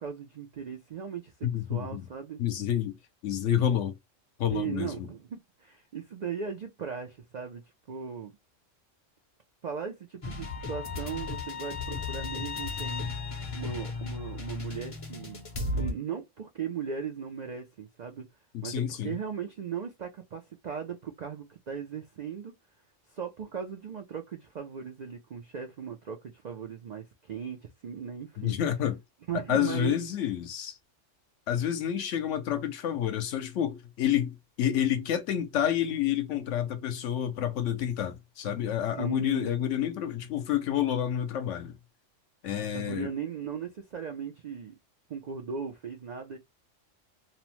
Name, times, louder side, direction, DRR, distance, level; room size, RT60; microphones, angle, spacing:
voice 1, 0.0-1.3 1.7-2.4 4.5-7.6 7.9-8.3 9.6-13.0 13.5-15.4 15.7-18.3 18.6-22.5 23.1-28.6 29.3-30.0 39.0-39.5 42.7-44.7 45.1-46.4, right 7 dB, 65° right, 0.4 m, -38 dB
voice 2, 1.4-2.1 2.4-3.0 3.2-4.0 4.4-4.9 18.5-19.1 28.4-29.0 29.5-30.8 31.5-41.7 42.4-43.1, left 10 dB, 75° left, 0.9 m, -29 dB
sound 1, 10.2-15.9, left 3 dB, 35° left, 0.6 m, -35 dB
2.9 x 2.0 x 2.9 m
omnidirectional pair, 1.3 m